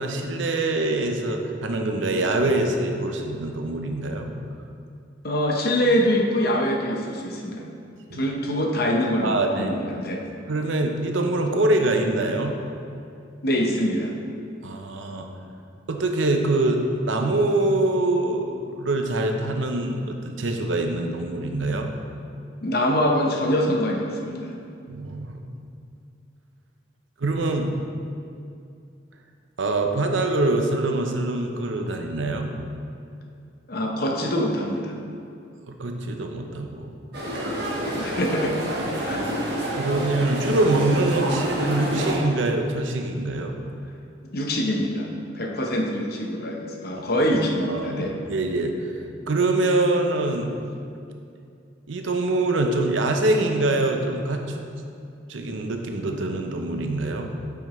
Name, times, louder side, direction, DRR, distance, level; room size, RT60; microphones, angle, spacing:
voice 1, 0.0-4.3 8.1-8.3 9.2-9.9 10.5-12.6 14.6-15.3 15.9-21.9 24.9-25.4 27.2-27.8 29.6-32.5 35.7-36.9 39.8-43.5 47.7-48.9 49.3-50.5 51.9-54.6 55.3-57.3, right 2 dB, 80° right, 4 dB, 0.7 m, -24 dB
voice 2, 5.2-7.6 8.1-10.2 13.4-14.1 22.6-24.5 33.7-35.0 37.9-39.4 44.3-45.1 45.3-48.2, equal, 55° left, 1 dB, 0.8 m, -24 dB
sound 1, 37.1-42.2, right 1 dB, 55° right, 1.2 m, -28 dB
8.8 x 5.8 x 3.1 m, 2.5 s
head